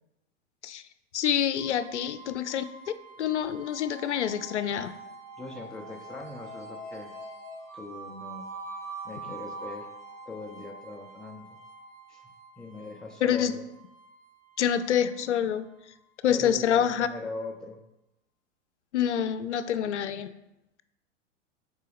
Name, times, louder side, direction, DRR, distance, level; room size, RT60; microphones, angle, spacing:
voice 1, 1.1-2.6 3.2-4.9 13.2-13.5 14.6-15.7 16.2-17.1 18.9-20.3, left 9 dB, 70° left, 13 dB, 0.6 m, -26 dB
sound 1, 1.5-16.5, right 3 dB, 80° right, 1.6 m, -45 dB
voice 2, 5.4-7.1 7.7-8.5 9.0-9.9 10.3-11.5 12.1-12.2 12.6-13.7 16.3-17.8, left 3 dB, ahead, 1 dB, 0.4 m, -40 dB
7.3 x 4.6 x 3.5 m, 0.90 s
figure-of-eight pair, 95°, 36 cm